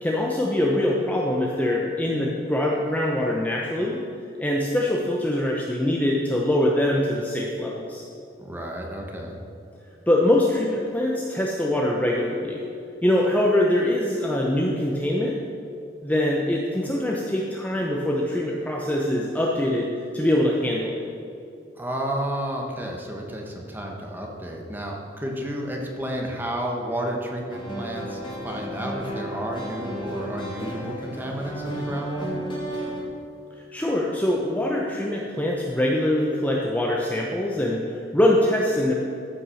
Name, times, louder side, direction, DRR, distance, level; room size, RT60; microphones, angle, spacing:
voice 1, 0.0-4.0 4.4-8.0 10.1-12.6 13.0-15.4 16.0-21.1 33.7-38.9, left 1 dB, 10° left, -2 dB, 0.8 m, -23 dB
voice 2, 8.4-9.4 21.8-32.4, right 1 dB, 10° right, 0 dB, 1.4 m, -31 dB
sound 1, 27.5-33.0, equal, 25° left, 2.5 m, -33 dB
14.0 x 6.0 x 6.4 m, 2.5 s
head